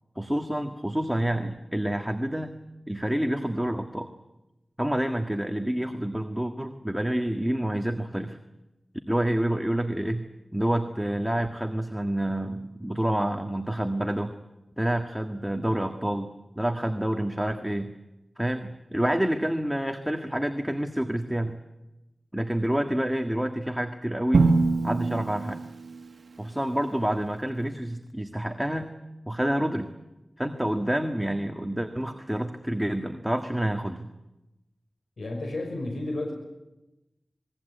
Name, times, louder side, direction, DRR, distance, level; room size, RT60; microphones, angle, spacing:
voice 1, 0.1-2.5 2.9-4.1 4.8-8.4 9.1-10.2 10.5-14.3 14.8-16.3 16.5-17.9 18.4-21.6 22.3-24.5 24.8-25.7 26.4-29.0 29.3-29.9 30.4-34.1, right 1 dB, 5° right, 5 dB, 1.7 m, -28 dB
Drum, 24.3-26.4, right 3 dB, 75° right, 1.3 m, -24 dB
voice 2, 35.2-36.3, left 2 dB, 85° left, 2 dB, 5.9 m, -32 dB
27.5 x 22.0 x 8.2 m, 0.97 s
wide cardioid pair, 85°, 0 cm